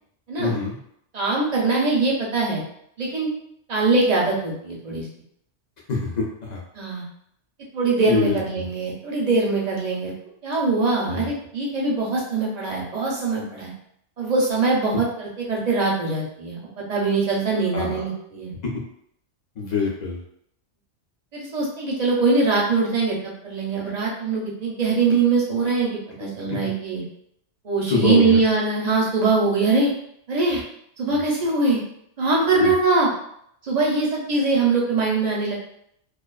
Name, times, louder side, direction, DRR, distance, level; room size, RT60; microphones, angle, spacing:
voice 1, 0.4-0.8 5.9-6.6 8.1-8.7 11.1-11.3 17.7-18.1 18.6-18.7 19.6-20.2 26.5-26.6 27.9-28.4 32.6-32.7, left 4 dB, 50° left, -2 dB, 0.5 m, -25 dB
voice 2, 1.1-2.6 3.0-3.3 3.7-5.1 6.7-7.0 7.7-10.1 10.4-13.7 14.2-18.5 21.3-27.0 27.6-29.9 30.3-30.6 31.0-31.8 32.2-33.1 33.6-35.5, right 3 dB, 50° right, -3 dB, 0.5 m, -22 dB
2.4 x 2.2 x 2.3 m, 0.72 s
omnidirectional pair, 1.2 m